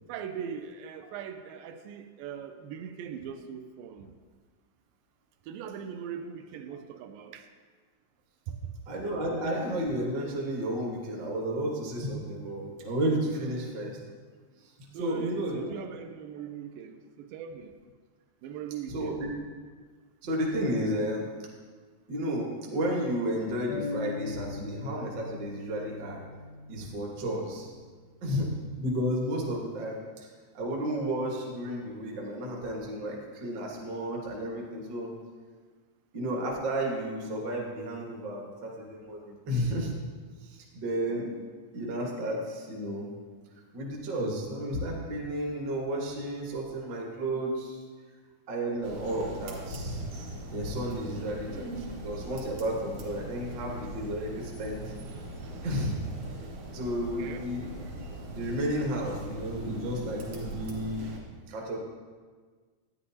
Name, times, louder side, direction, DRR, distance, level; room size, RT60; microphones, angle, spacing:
voice 1, 0.1-4.1 5.4-7.5 8.5-8.7 13.4-13.5 14.9-17.7 18.4-19.2 29.4-29.6 57.2-57.5, right 8 dB, 85° right, 7 dB, 2.3 m, -40 dB
voice 2, 8.9-14.0 15.0-15.7 18.9-19.3 20.2-21.3 22.1-26.2 26.7-27.7 28.2-28.5 28.8-30.3 30.5-35.1 36.1-39.9 40.4-41.3 41.7-43.1 43.7-47.8 48.5-50.0 50.5-54.8 55.6-56.0 56.7-57.7 58.3-61.0 61.5-61.8, right 1 dB, 50° right, -2 dB, 1.3 m, -32 dB
sound 1, 23.7-27.5, left 4 dB, 85° left, 2.3 m, -39 dB
sound 2, 48.8-61.2, right 2 dB, 70° right, 2.7 m, -40 dB
11.5 x 9.6 x 2.8 m, 1.5 s
omnidirectional pair, 4.0 m